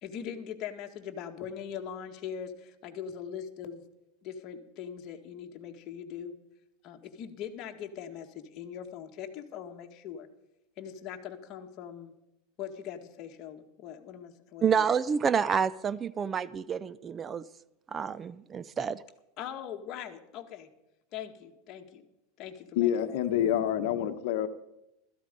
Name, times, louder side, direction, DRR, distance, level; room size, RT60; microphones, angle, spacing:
voice 1, 0.0-3.8 4.2-6.3 6.8-10.3 10.8-12.1 12.6-14.9 19.4-20.7 21.1-22.0 22.4-23.4, left 8 dB, 40° left, 1.8 m, -41 dB
voice 2, 14.6-17.4 17.9-19.0, right 6 dB, 25° right, 0.4 m, -28 dB
voice 3, 22.8-24.5, left 10 dB, 65° left, 1.1 m, -27 dB
16.0 x 14.0 x 5.3 m
supercardioid pair, 130°, 0 cm